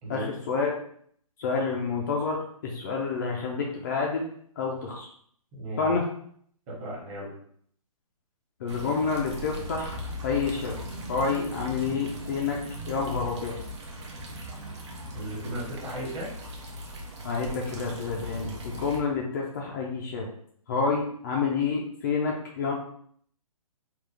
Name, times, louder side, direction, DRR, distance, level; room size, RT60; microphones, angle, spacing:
voice 1, 0.1-0.7 1.4-4.3 4.6-5.1 5.8-6.0 8.6-10.8 11.1-12.6 12.9-13.5 17.2-20.3 20.7-22.7, left 5 dB, 30° left, -2 dB, 0.4 m, -28 dB
voice 2, 5.5-5.9 6.7-7.3 15.1-16.3, right 1 dB, 25° right, -5 dB, 1.2 m, -35 dB
sound 1, 8.7-19.0, equal, 50° right, 0.9 m, -39 dB
3.8 x 2.3 x 3.2 m, 0.62 s
hypercardioid pair, 155°, 19 cm